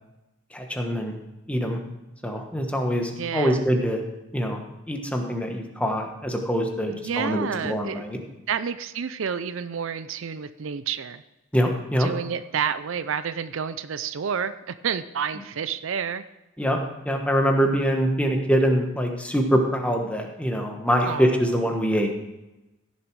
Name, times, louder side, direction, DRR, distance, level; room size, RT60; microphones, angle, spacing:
voice 1, 0.5-1.1 1.5-1.8 2.2-4.0 4.3-4.6 4.9-8.2 11.5-12.1 16.6-22.1, equal, 5° left, 3 dB, 1.2 m, -24 dB
voice 2, 3.2-3.6 7.0-8.0 8.5-11.2 12.0-16.2 21.0-21.3, right 7 dB, 65° right, 13 dB, 0.5 m, -29 dB
15.5 x 7.1 x 4.7 m, 1.0 s
head